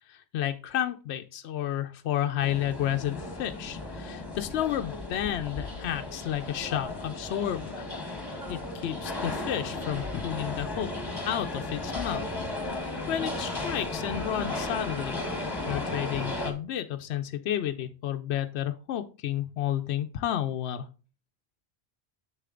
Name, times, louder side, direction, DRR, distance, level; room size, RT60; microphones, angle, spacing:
voice 1, 0.1-7.9 8.5-10.9 11.2-12.2 12.6-20.9, left 11 dB, 75° left, 7 dB, 0.8 m, -31 dB
sound 1, 2.4-16.5, left 2 dB, 20° left, 1.4 m, -35 dB
7.0 x 6.6 x 3.7 m, 0.35 s
omnidirectional pair, 1.1 m